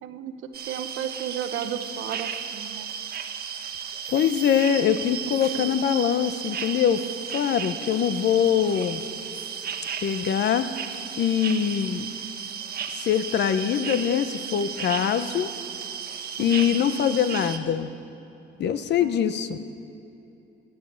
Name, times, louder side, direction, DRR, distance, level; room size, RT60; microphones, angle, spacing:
voice 1, 0.0-2.9 16.4-16.8 19.0-19.6, right 9 dB, 85° right, 8 dB, 1.0 m, -34 dB
sound 1, 0.5-17.6, right 7 dB, 50° right, 1.2 m, -34 dB
voice 2, 4.1-7.0 7.3-9.0 10.0-10.7 11.2-12.1 12.9-15.5 16.4-17.9 18.6-19.6, left 8 dB, 60° left, 11 dB, 0.8 m, -23 dB
15.0 x 10.5 x 8.2 m, 3.0 s
cardioid pair, 115°, 20 cm